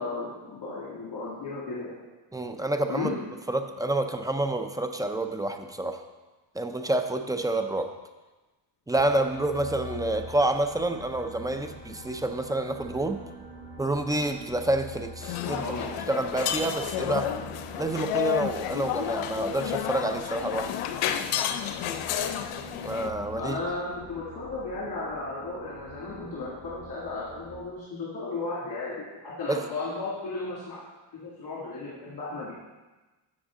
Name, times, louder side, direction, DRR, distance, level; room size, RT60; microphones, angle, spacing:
voice 1, 0.0-2.0 2.9-3.1 15.4-15.9 23.3-30.8 31.1-32.5, left 3 dB, 45° left, -7 dB, 2.3 m, -35 dB
voice 2, 2.3-3.1 3.5-6.0 6.5-7.9 8.9-13.2 13.8-15.7 16.1-17.3 17.8-20.7 22.8-23.6 29.5-29.6, right 2 dB, 10° right, 7 dB, 0.4 m, -28 dB
sound 1, 8.9-27.6, equal, 15° left, 2.1 m, -45 dB
sound 2, 15.2-23.1, left 10 dB, 85° left, 0.7 m, -31 dB
7.3 x 7.1 x 3.7 m, 1.2 s
cardioid pair, 85°, 50 cm